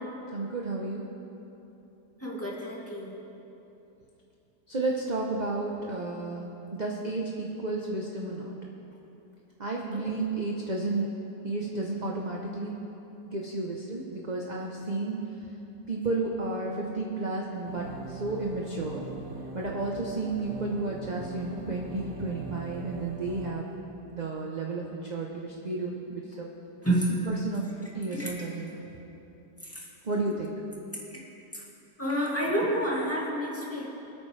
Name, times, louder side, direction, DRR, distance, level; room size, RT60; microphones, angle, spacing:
voice 1, 0.3-1.0 4.7-8.6 9.6-11.1 11.4-12.8 13.2-15.2 15.9-19.1 19.5-23.7 24.1-26.5 27.3-27.6 27.9-28.8 30.0-30.5, right 2 dB, 30° right, -1 dB, 0.9 m, -32 dB
voice 2, 2.2-3.2 9.9-10.2 26.8-27.1 28.1-28.3 29.6-29.9 31.1-31.2 31.5-31.6 32.0-33.9, right 1 dB, 10° left, -6 dB, 2.3 m, -29 dB
sound 1, 17.6-23.5, right 3 dB, 85° right, 1.6 m, -41 dB
25.5 x 8.9 x 3.4 m, 3.0 s
omnidirectional pair, 1.8 m